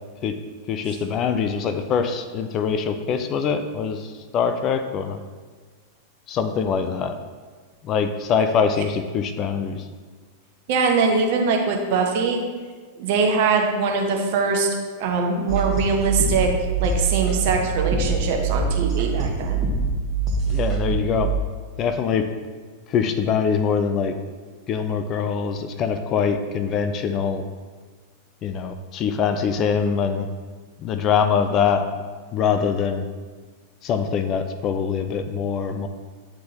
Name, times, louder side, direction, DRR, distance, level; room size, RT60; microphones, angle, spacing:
voice 1, 0.7-5.2 6.3-7.2 7.8-9.9 20.5-21.3 21.8-22.3 22.9-24.1 24.7-27.4 28.4-30.3 30.8-31.9 32.3-33.1 33.8-35.9, left 6 dB, 35° left, 8 dB, 0.4 m, -23 dB
voice 2, 10.7-12.4 12.9-14.7 15.0-16.5 16.8-19.6, right 4 dB, 50° right, 2 dB, 0.9 m, -22 dB
sound 1, 15.5-21.4, right 5 dB, 30° right, 1.1 m, -24 dB
9.3 x 3.7 x 2.8 m, 1.5 s
figure-of-eight pair, 90°, 0 cm